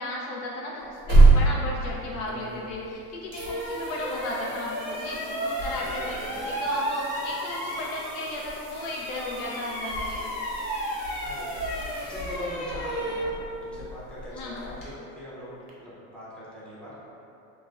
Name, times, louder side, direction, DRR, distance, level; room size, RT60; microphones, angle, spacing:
voice 1, 0.0-6.2 6.4-10.2 14.3-14.7, left 1 dB, 75° left, -3 dB, 0.5 m, -35 dB
sound 1, 0.8-2.9 3.3-12.9 15.7-15.8, right 3 dB, 45° right, 0.6 m, -27 dB
sound 2, 2.7-2.8 3.3-8.5 8.8-14.9, equal, 50° left, 1.0 m, -33 dB
voice 2, 5.6-6.6 11.2-13.3 13.6-15.5 15.8-17.0, equal, 5° left, -9 dB, 0.5 m, -42 dB
3.1 x 2.0 x 2.3 m, 2.6 s
supercardioid pair, 115°, 41 cm